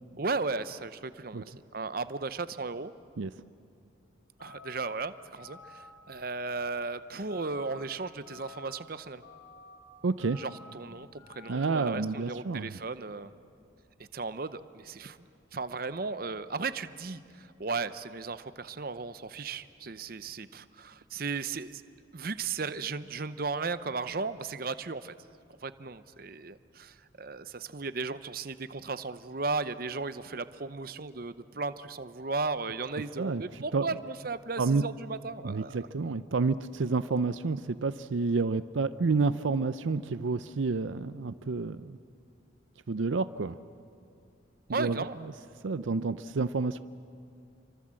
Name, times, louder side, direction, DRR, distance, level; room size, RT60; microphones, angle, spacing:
voice 1, 0.2-2.9 4.4-9.2 10.3-13.3 14.1-15.2 15.5-21.8 22.1-25.1 25.6-35.9 44.7-45.2, right 4 dB, 50° right, 13 dB, 0.7 m, -35 dB
sound 1, 4.4-4.9 5.4-5.9 6.3-6.9 7.3-7.8 8.3-8.8 9.2-9.8 10.2-10.7 11.2-11.7, left 5 dB, 70° left, 5.3 m, -50 dB
voice 2, 10.0-10.4 11.5-12.7 33.2-33.4 33.7-33.9 34.6-34.8 35.4-42.0 42.9-43.6 44.7-45.1 45.6-46.8, right 4 dB, 75° right, 13 dB, 0.5 m, -29 dB
28.0 x 24.5 x 7.6 m, 2.5 s
head